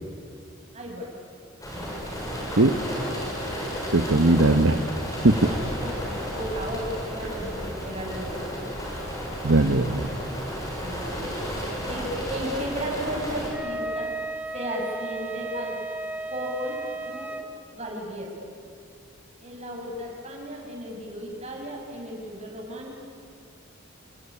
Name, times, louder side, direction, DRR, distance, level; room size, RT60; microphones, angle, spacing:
voice 1, 0.7-1.1 1.7-2.2 5.8-8.6 10.8-12.0 12.3-14.1 14.5-15.7 16.3-17.3 17.7-18.3 19.4-22.9, equal, 30° right, -1 dB, 6.6 m, -35 dB
sound 1, 1.6-13.5, equal, 15° left, 6.8 m, -33 dB
voice 2, 3.9-4.9 5.2-5.5 9.4-10.1, right 2 dB, 65° right, 7 dB, 1.1 m, -19 dB
Wind instrument woodwind instrument, 13.5-17.5, right 2 dB, 10° right, 1.7 m, -34 dB
27.5 x 20.5 x 9.9 m, 2.3 s
head